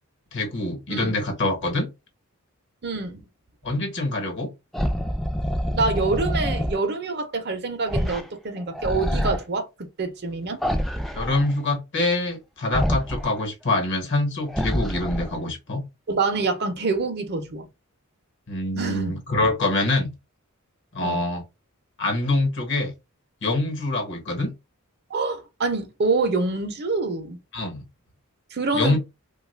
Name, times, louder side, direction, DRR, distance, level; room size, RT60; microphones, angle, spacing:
voice 1, 0.3-1.9 3.6-4.5 11.1-15.8 18.5-20.1 20.9-21.4 22.0-22.9 23.4-24.5 27.5-27.8 28.7-29.0, left 2 dB, 55° left, 1.1 m, -25 dB
voice 2, 2.8-3.2 5.7-10.6 16.1-17.7 18.8-19.2 21.0-21.2 25.1-27.4 28.5-29.0, right 3 dB, 50° right, 0.6 m, -26 dB
sound 1, 4.7-6.8 7.9-8.3 8.6-9.4 10.6-11.5 12.7-13.3 14.5-15.4, equal, ahead, 0.3 m, -26 dB
3.1 x 2.3 x 3.2 m
head